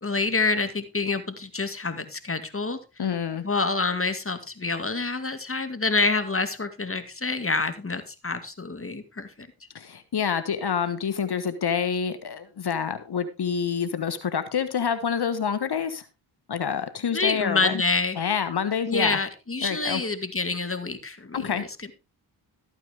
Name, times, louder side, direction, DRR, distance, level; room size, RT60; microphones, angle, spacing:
voice 1, 0.0-2.8 3.4-9.5 17.1-18.2 18.9-21.9, left 3 dB, 25° left, 9 dB, 2.3 m, -27 dB
voice 2, 3.0-3.5 9.7-16.0 16.5-17.8 18.2-19.2 19.6-20.0 21.3-21.6, left 7 dB, 50° left, 11 dB, 1.4 m, -27 dB
14.0 x 9.2 x 3.6 m, 0.29 s
supercardioid pair, 45°, 50 cm